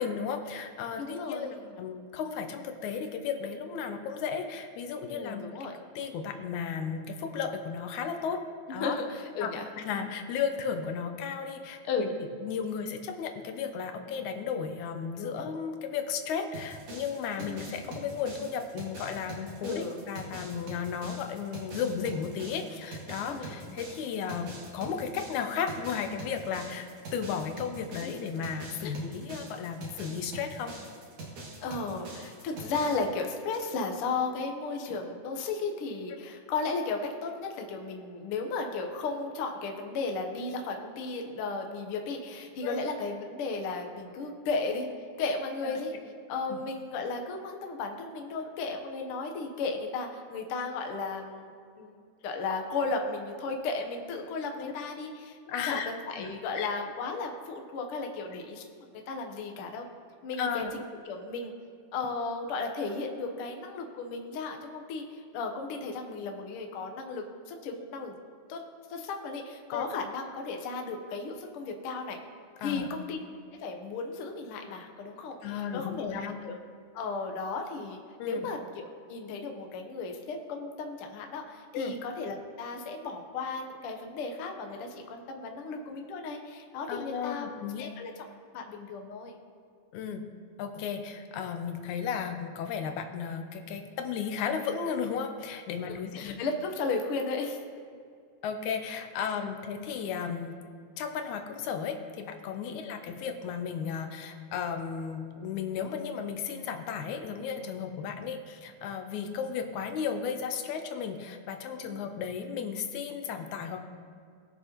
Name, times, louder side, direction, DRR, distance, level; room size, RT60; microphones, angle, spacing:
voice 1, 0.0-5.7 6.0-8.4 8.7-9.0 9.4-9.5 9.8-12.1 12.4-30.7 42.6-42.8 45.6-45.7 46.5-46.6 54.6-54.7 55.5-55.9 56.2-56.7 60.4-60.7 69.7-69.9 72.6-72.9 75.4-76.4 78.2-78.5 81.7-82.0 86.9-87.9 89.9-90.2 90.6-96.4 98.4-100.5 101.0-113.8, left 7 dB, 80° left, 6 dB, 2.1 m, -34 dB
voice 2, 1.0-1.5 5.1-5.7 8.7-10.0 11.8-12.1 15.2-15.5 17.4-17.7 19.6-20.0 23.2-23.8 28.0-28.1 28.8-28.9 31.6-44.9 45.2-45.9 46.3-52.0 52.2-55.4 55.7-58.6 59.1-59.9 60.2-60.6 61.0-61.5 61.9-68.2 68.5-68.6 68.9-72.2 72.6-73.2 73.6-76.6 76.9-87.5 87.8-88.1 88.5-89.3 95.9-97.6 111.8-112.0, left 4 dB, 65° left, 3 dB, 1.5 m, -35 dB
sound 1, 16.5-33.0, right 2 dB, 60° right, 3.1 m, -44 dB
20.0 x 6.7 x 3.0 m, 2.2 s
omnidirectional pair, 3.4 m